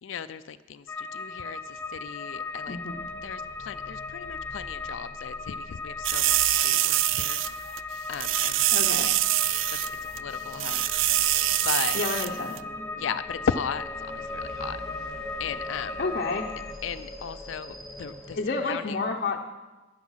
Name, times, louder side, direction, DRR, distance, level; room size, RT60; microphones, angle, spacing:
voice 1, 0.0-2.8 3.2-7.4 8.1-8.7 9.0-9.1 10.1-10.8 11.6-12.0 13.0-14.8 15.4-16.0 16.8-19.0, left 7 dB, 80° left, 12 dB, 0.4 m, -35 dB
sound 1, 0.9-16.7, left 4 dB, 15° left, 0.8 m, -37 dB
sound 2, 1.6-18.4, equal, ahead, 3.6 m, -45 dB
voice 2, 2.7-3.0 8.7-9.1 11.9-12.6 16.0-16.5 18.3-19.5, left 3 dB, 50° left, 1 dB, 0.7 m, -30 dB
sound 3, 6.0-7.5 7.8-7.9 8.1-9.9 10.2-10.3 10.5-12.3 12.6-12.7, right 15 dB, 75° right, 0.3 m, -24 dB
12.0 x 9.5 x 5.7 m, 1.2 s
head